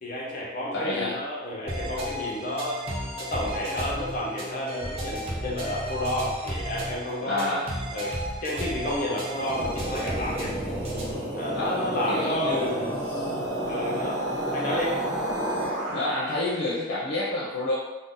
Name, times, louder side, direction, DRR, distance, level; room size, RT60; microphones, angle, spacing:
voice 1, 0.0-2.8 3.2-7.6 7.9-10.6 11.3-12.8 13.7-14.2 14.5-15.0, left 1 dB, 40° left, -4 dB, 0.7 m, -31 dB
voice 2, 0.7-1.2 7.3-7.7 11.5-13.3 14.6-14.8 15.9-17.8, left 2 dB, 90° left, -6 dB, 0.5 m, -29 dB
sound 1, 1.7-11.3, equal, 30° right, 0.5 m, -34 dB
sound 2, 9.2-16.6, right 1 dB, 55° right, 0.9 m, -31 dB
2.6 x 2.0 x 3.6 m, 1.1 s
head